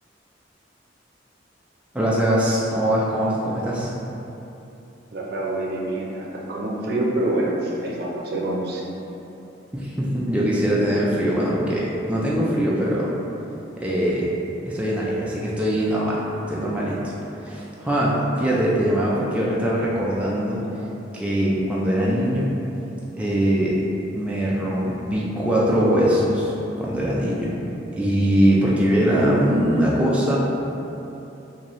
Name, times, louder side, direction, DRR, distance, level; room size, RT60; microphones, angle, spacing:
voice 1, 1.9-3.9 9.7-13.1 13.8-14.3 14.7-16.2 16.5-17.1 17.4-20.6 21.1-22.5 23.2-23.8 24.1-27.5 27.9-30.4, equal, 5° right, -6 dB, 0.3 m, -22 dB
voice 2, 5.1-8.8, right 1 dB, 60° right, -3 dB, 0.6 m, -26 dB
4.0 x 2.6 x 3.0 m, 3.0 s
head